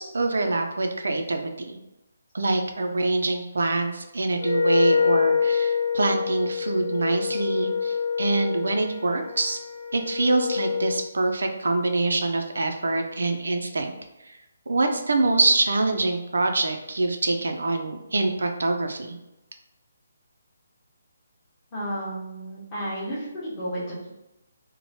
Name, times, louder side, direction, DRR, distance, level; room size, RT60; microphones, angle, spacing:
voice 1, 0.0-1.8 2.3-9.6 9.9-13.9 14.2-14.3 14.7-19.2, right 2 dB, 85° right, 5 dB, 0.4 m, -25 dB
Wind instrument woodwind instrument, 4.4-11.1, left 5 dB, 70° left, 0.7 m, -26 dB
voice 2, 21.7-24.1, right 1 dB, 15° left, -9 dB, 0.7 m, -32 dB
3.0 x 2.1 x 2.7 m, 0.93 s
hypercardioid pair, 180°, 0 cm